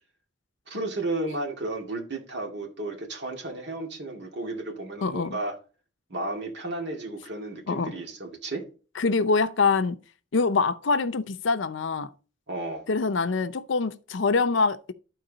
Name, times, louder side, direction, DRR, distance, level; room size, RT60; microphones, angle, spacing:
voice 1, 0.7-5.6 6.1-8.6 12.5-12.9, right 2 dB, 65° right, 2.1 m, -33 dB
voice 2, 5.0-5.4 7.7-7.9 9.0-10.0 10.3-12.1 12.9-14.9, left 4 dB, 85° left, 0.6 m, -24 dB
12.5 x 4.6 x 3.9 m
head